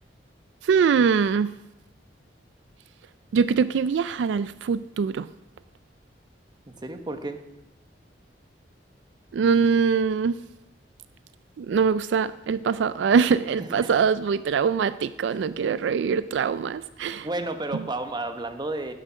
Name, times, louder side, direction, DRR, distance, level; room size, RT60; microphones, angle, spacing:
voice 1, 0.7-1.5 3.3-5.3 9.3-10.4 11.6-17.3, right 6 dB, 75° right, 15 dB, 0.3 m, -23 dB
voice 2, 6.7-7.4 13.6-13.9 17.2-18.9, right 2 dB, 25° right, 7 dB, 1.0 m, -32 dB
12.0 x 10.0 x 5.6 m, 0.93 s
head